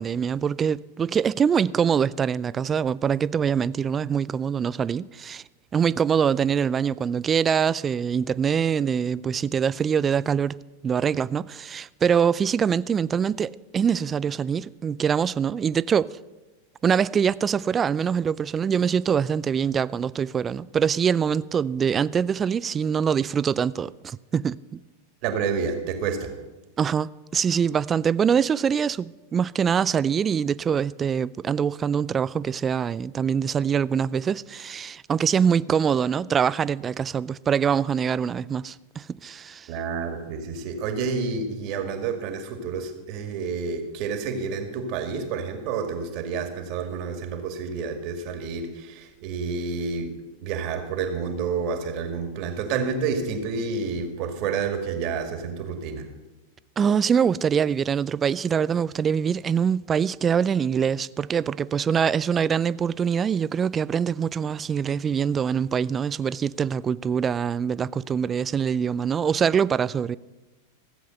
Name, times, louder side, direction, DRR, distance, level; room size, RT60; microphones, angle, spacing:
voice 1, 0.0-5.4 5.7-10.6 10.8-16.2 16.8-24.8 26.8-39.7 56.8-70.2, right 7 dB, 25° right, 0.3 m, -24 dB
voice 2, 25.2-26.3 39.7-50.1 50.4-56.1, right 5 dB, 50° right, 2.1 m, -29 dB
15.5 x 7.8 x 6.5 m
hypercardioid pair, 105°, 0 cm